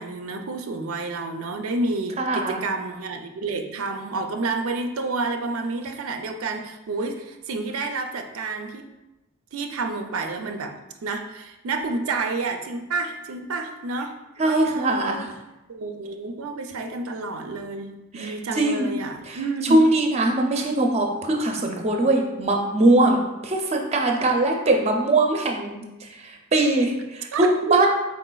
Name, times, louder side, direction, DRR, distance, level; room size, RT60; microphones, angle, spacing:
voice 1, 0.0-8.9 9.5-10.8 11.0-14.2 14.4-15.3 15.7-19.8 27.3-27.8, right 3 dB, 85° right, 5 dB, 0.4 m, -29 dB
voice 2, 2.2-2.6 14.4-15.3 18.1-18.9 19.3-27.9, right 2 dB, 30° right, 2 dB, 0.5 m, -21 dB
4.3 x 4.1 x 2.2 m, 0.99 s
head